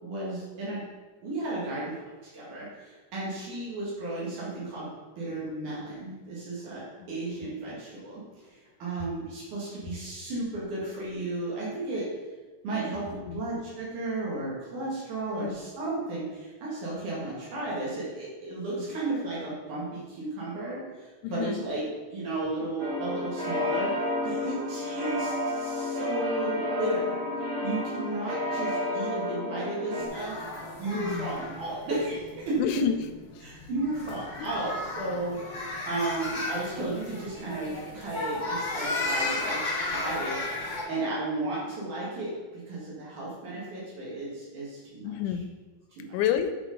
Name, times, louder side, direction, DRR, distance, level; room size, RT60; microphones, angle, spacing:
voice 1, 0.0-0.9 1.2-2.0 2.2-4.9 5.2-8.2 8.5-12.1 12.6-21.8 22.1-23.9 24.2-27.2 27.6-32.6 33.4-35.4 35.9-40.4 40.9-45.2 45.9-46.2, right 2 dB, 75° right, -6 dB, 3.5 m, -34 dB
voice 2, 21.2-21.7 30.9-31.3 32.6-33.1 33.4-33.5 34.4-34.5 45.0-45.5 46.1-46.5, left 10 dB, 80° left, 9 dB, 2.0 m, -29 dB
sound 1, 22.8-30.1, left 2 dB, 45° right, 0.8 m, -31 dB
sound 2, 30.0-40.8, left 2 dB, 25° left, 1.0 m, -34 dB
8.4 x 4.6 x 5.2 m, 1.3 s
omnidirectional pair, 3.5 m